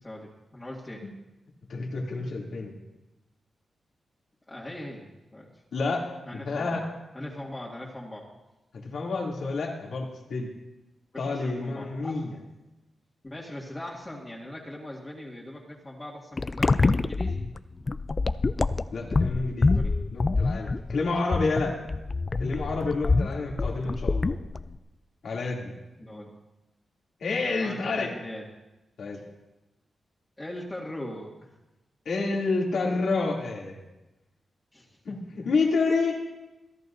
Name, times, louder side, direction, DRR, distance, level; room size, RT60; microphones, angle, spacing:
voice 1, 0.0-1.1 4.5-5.5 6.3-6.8 7.1-8.3 11.1-12.2 13.2-17.5 19.7-19.9 26.0-26.3 27.6-28.4 30.4-31.5 34.7-35.0 35.4-35.5, left 1 dB, 20° left, -6 dB, 2.1 m, -40 dB
voice 2, 1.7-2.7 5.7-6.1 6.3-6.8 8.7-10.5 11.2-12.4 18.9-19.8 20.1-21.8 22.4-24.4 25.2-25.7 27.2-28.1 29.0-29.2 32.0-33.8 35.0-36.1, left 3 dB, 75° left, -1 dB, 2.7 m, -29 dB
sound 1, 16.4-24.7, left 3 dB, 35° left, 0.4 m, -26 dB
27.0 x 11.0 x 2.7 m, 1.0 s
cardioid pair, 85°, 0 cm